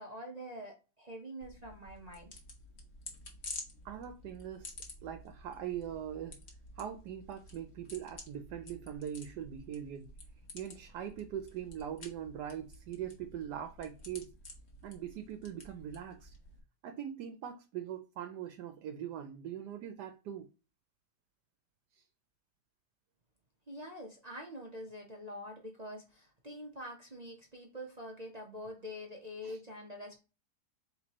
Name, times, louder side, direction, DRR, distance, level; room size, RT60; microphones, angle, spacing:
voice 1, 0.0-2.3 23.7-30.2, equal, 35° right, 0.7 m, -45 dB
sound 1, 1.4-16.6, left 2 dB, 45° left, 1.3 m, -51 dB
voice 2, 3.8-4.7 5.0-6.4 6.8-10.1 10.5-14.3 14.8-16.3 16.8-20.5 21.9-22.0 29.4-29.6, right 9 dB, 80° right, 1.2 m, -41 dB
4.3 x 3.7 x 2.9 m
omnidirectional pair, 1.8 m